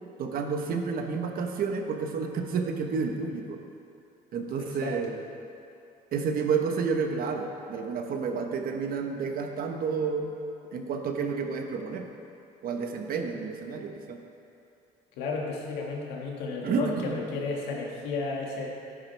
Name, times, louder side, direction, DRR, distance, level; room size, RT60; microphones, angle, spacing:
voice 1, 0.2-3.6 4.3-5.2 6.1-10.3 10.7-12.1 12.6-14.2 16.6-17.2, right 5 dB, 60° right, 4 dB, 1.2 m, -30 dB
voice 2, 4.6-5.0 15.2-18.7, left 4 dB, 90° left, -1 dB, 1.9 m, -33 dB
13.0 x 10.5 x 3.4 m, 2.8 s
cardioid pair, 110°, 17 cm